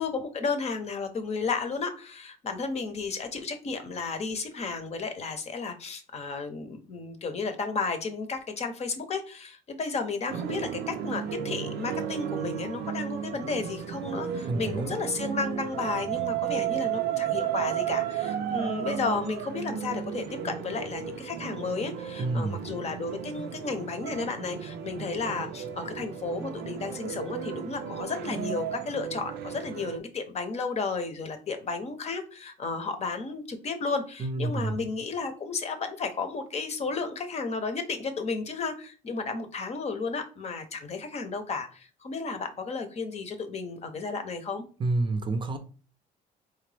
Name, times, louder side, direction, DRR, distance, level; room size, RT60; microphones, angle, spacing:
voice 1, 0.0-44.6, left 4 dB, 40° left, 7 dB, 0.8 m, -33 dB
sound 1, 10.3-30.0, right 9 dB, 75° right, 0.5 m, -34 dB
voice 2, 14.5-14.9 22.2-22.6 34.2-34.8 44.8-45.6, right 2 dB, 30° right, 7 dB, 0.6 m, -28 dB
3.9 x 2.9 x 3.3 m, 0.37 s
cardioid pair, 110°, 17 cm